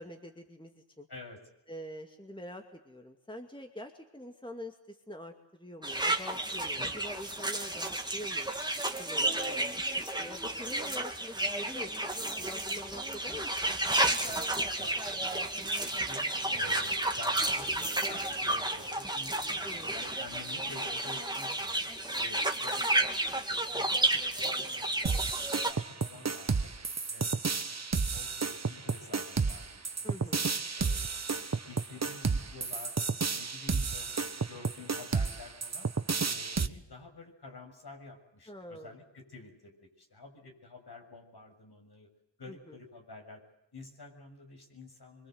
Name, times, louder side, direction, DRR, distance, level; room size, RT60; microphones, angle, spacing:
voice 1, 0.0-1.1 1.7-8.5 9.0-9.8 10.2-11.9 12.2-13.5 19.6-20.1 30.0-30.5 38.5-38.9 42.5-42.8, left 1 dB, 10° left, 4 dB, 2.4 m, -45 dB
voice 2, 1.1-1.4 6.8-7.0 10.5-10.7 14.2-16.2 16.5-21.9 22.2-26.7 27.1-27.8 28.1-31.2 31.5-32.9 33.3-35.9 36.2-42.1 42.4-43.4 43.7-45.3, left 3 dB, 55° left, 3 dB, 7.2 m, -50 dB
sound 1, 5.8-25.7, right 1 dB, 10° right, 2.6 m, -32 dB
sound 2, 25.0-36.7, right 4 dB, 35° right, 1.3 m, -31 dB
25.0 x 24.5 x 8.0 m, 0.87 s
cardioid pair, 65°, 47 cm